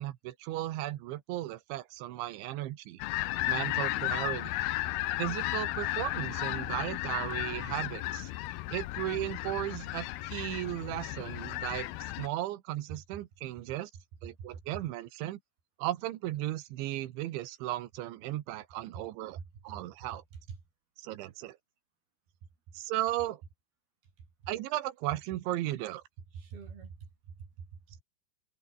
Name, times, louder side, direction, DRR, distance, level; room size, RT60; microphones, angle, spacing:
voice 1, 0.0-3.0 3.5-4.6 5.2-8.3 8.7-13.9 14.2-15.4 15.8-19.4 19.6-20.2 21.0-21.6 22.8-23.4 24.5-26.0, right 15 dB, 75° right, 3.6 m, -36 dB
sound 1, 3.0-12.3, left 17 dB, 80° left, 2.2 m, -34 dB
voice 2, 20.0-20.6 24.2-24.3 26.3-28.0, right 6 dB, 50° right, 6.5 m, -45 dB
omnidirectional pair, 5.5 m